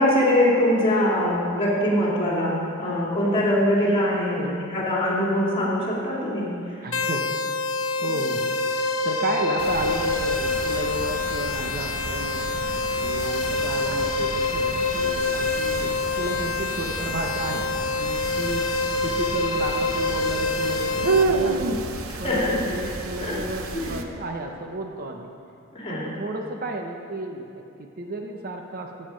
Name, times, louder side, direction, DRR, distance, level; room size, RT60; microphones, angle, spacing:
voice 1, 0.0-4.4 4.7-6.8 22.2-22.6 23.2-23.3 23.7-24.0 25.7-26.0, left 1 dB, 25° left, -5 dB, 3.3 m, -22 dB
voice 2, 6.8-7.2 8.0-12.5 13.0-21.7 22.2-25.3 26.2-29.1, right 2 dB, 45° right, 3 dB, 0.8 m, -33 dB
sound 1, 6.9-21.2, left 3 dB, 65° left, 1.2 m, -26 dB
sound 2, 9.6-24.0, right 3 dB, 75° right, 0.8 m, -31 dB
16.0 x 7.7 x 5.1 m, 2.6 s
head